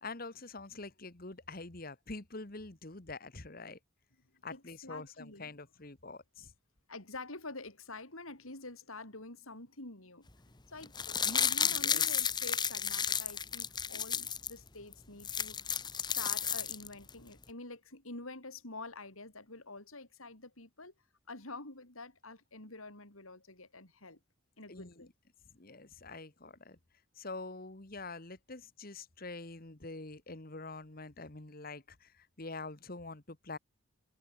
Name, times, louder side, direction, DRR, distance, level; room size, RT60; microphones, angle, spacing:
voice 1, 0.0-3.8 4.4-6.5 11.2-12.2 24.7-25.1 25.5-26.8 27.1-33.6, left 3 dB, 45° left, 1.7 m, -45 dB
voice 2, 4.5-5.5 6.9-10.3 10.7-15.6 16.0-20.9 21.3-24.2 24.6-25.1, left 2 dB, 80° left, 6.2 m, -47 dB
sound 1, 10.8-14.5 14.9-15.0 15.2-17.1 17.4-17.5, left 7 dB, 20° left, 1.3 m, -32 dB
head